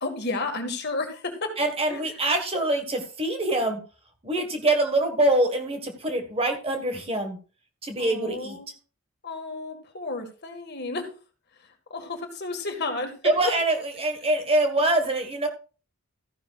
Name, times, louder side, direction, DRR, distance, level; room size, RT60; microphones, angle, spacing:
voice 1, 0.0-1.5 1.9-2.0 8.0-8.7 9.2-11.1 11.9-13.1 13.4-13.5, left 3 dB, 45° left, 5 dB, 1.9 m, -32 dB
voice 2, 1.6-3.8 4.2-7.4 7.8-8.6 13.2-15.5, right 1 dB, 25° right, 5 dB, 1.5 m, -24 dB
14.0 x 11.0 x 2.4 m, 0.36 s
head